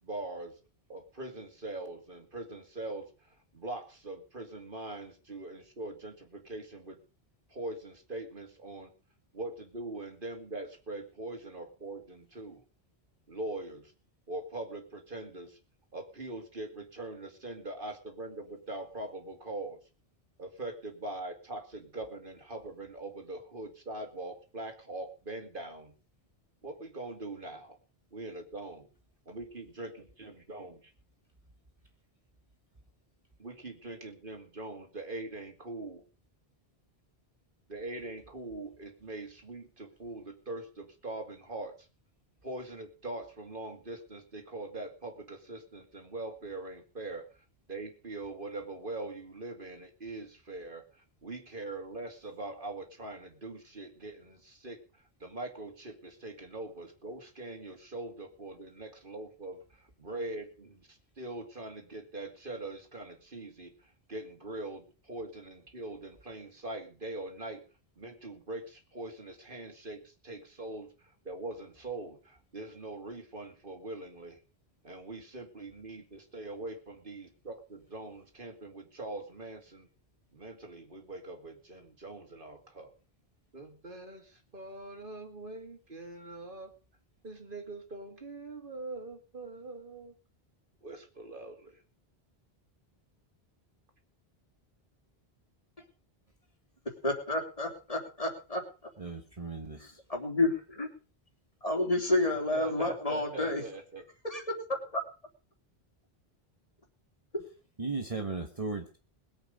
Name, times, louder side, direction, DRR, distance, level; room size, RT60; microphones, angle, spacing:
voice 1, 0.0-0.6 0.9-7.0 7.5-8.9 9.3-12.6 13.3-13.9 14.3-15.6 15.9-19.8 20.4-25.9 26.6-27.8 28.1-28.9 29.3-30.9 33.4-36.0 37.7-41.9 42.4-67.6 68.0-74.4 74.8-79.9 80.3-82.9 83.5-86.7 87.2-90.1 90.8-91.8 102.2-104.0, right 2 dB, 55° right, 4 dB, 2.5 m, -42 dB
voice 2, 97.0-98.6 99.8-100.9 101.6-103.6 104.2-104.4 104.7-105.0 107.3-107.4, left 2 dB, 35° left, 2 dB, 3.4 m, -30 dB
voice 3, 99.0-99.9 107.8-109.0, right 4 dB, 35° right, 3 dB, 1.4 m, -36 dB
21.5 x 8.1 x 5.3 m, 0.35 s
omnidirectional pair, 1.1 m